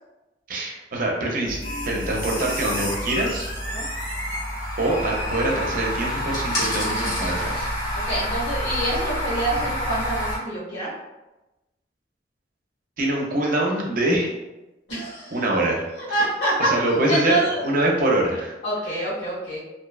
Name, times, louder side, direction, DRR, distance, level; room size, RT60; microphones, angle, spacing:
voice 1, 0.5-1.6 1.9-3.5 4.8-7.7 13.0-14.3 15.3-15.8 16.6-18.5, right 1 dB, 50° right, -1 dB, 0.5 m, -24 dB
sound 1, 1.5-10.4, equal, 45° left, 1.2 m, -28 dB
voice 2, 8.1-10.9 14.9-15.4 16.0-16.7 17.1-17.6 18.6-19.6, right 1 dB, 85° left, -8 dB, 1.5 m, -26 dB
2.5 x 2.2 x 2.3 m, 1.0 s
head